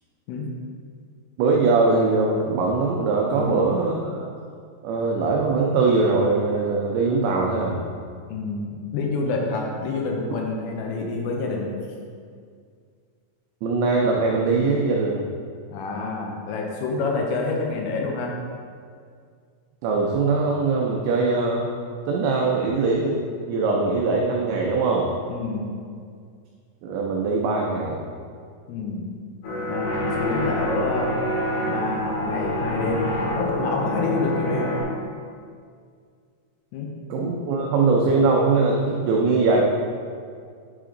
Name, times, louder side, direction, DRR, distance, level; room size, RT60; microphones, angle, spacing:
voice 1, 1.4-4.3 4.8-7.9 13.6-15.3 19.8-21.7 22.1-25.1 26.8-28.0 37.1-39.6, right 3 dB, 90° right, -1 dB, 2.5 m, -21 dB
voice 2, 3.4-3.7 8.3-11.7 15.7-18.4 25.3-25.7 28.7-29.1 29.7-31.1 31.7-33.1 33.4-34.7 36.7-36.9, left 3 dB, 80° left, 0 dB, 3.3 m, -28 dB
sound 1, 29.4-34.8, left 1 dB, 65° left, 3.4 m, -26 dB
9.2 x 5.1 x 3.8 m, 2.2 s
omnidirectional pair, 6.0 m